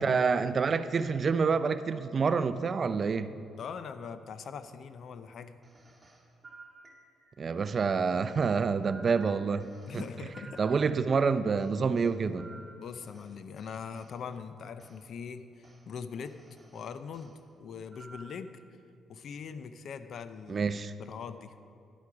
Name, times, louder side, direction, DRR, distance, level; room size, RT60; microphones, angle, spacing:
voice 1, 0.0-3.3 7.4-9.6 9.9-10.0 10.6-12.5 20.5-20.9, right 5 dB, 45° right, 13 dB, 0.4 m, -27 dB
voice 2, 3.6-5.6 9.9-10.6 12.8-16.4 16.7-18.6 19.1-20.7 21.0-21.6, left 6 dB, 60° left, 11 dB, 0.5 m, -42 dB
sound 1, 5.6-7.4 8.1-11.2 11.6-14.2 14.8-15.0 15.6-15.8 16.2-17.3 17.9-18.5, right 2 dB, 20° right, 2.1 m, -53 dB
11.0 x 8.3 x 4.9 m, 2.5 s
cardioid pair, 90°, 0 cm